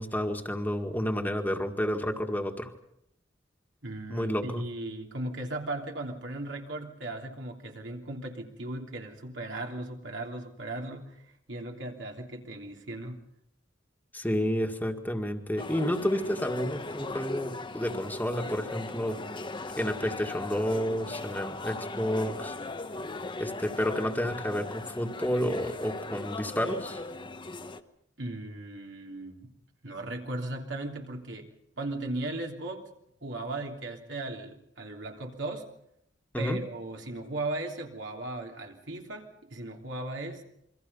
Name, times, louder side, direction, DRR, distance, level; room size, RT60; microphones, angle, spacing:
voice 1, 0.0-2.7 4.1-4.6 14.1-19.2 19.8-22.5 23.4-27.0 36.3-36.6, equal, 10° left, 3 dB, 1.9 m, -30 dB
voice 2, 3.8-13.2 28.2-29.5 29.8-32.8 33.2-35.7 36.4-40.4, right 2 dB, 70° right, 1 dB, 3.2 m, -37 dB
sound 1, 15.6-27.8, left 2 dB, 25° left, 1.0 m, -38 dB
27.5 x 24.0 x 5.5 m, 0.77 s
head